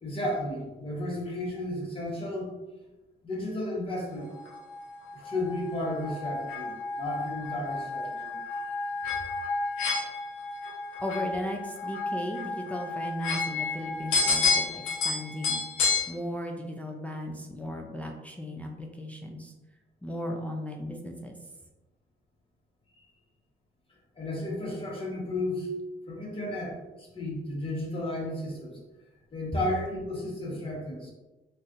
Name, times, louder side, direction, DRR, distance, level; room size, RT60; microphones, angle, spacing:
voice 1, 0.0-2.6 3.2-4.3 5.2-8.4 24.2-25.7 26.1-28.7 29.3-31.1, left 1 dB, 25° left, -3 dB, 1.2 m, -33 dB
sound 1, 4.3-16.1, left 3 dB, 90° left, 1.0 m, -31 dB
voice 2, 11.0-15.6 16.1-19.5 20.0-21.4, equal, 5° left, 1 dB, 0.4 m, -36 dB
4.1 x 2.5 x 2.5 m, 1.1 s
cardioid pair, 90°, 20 cm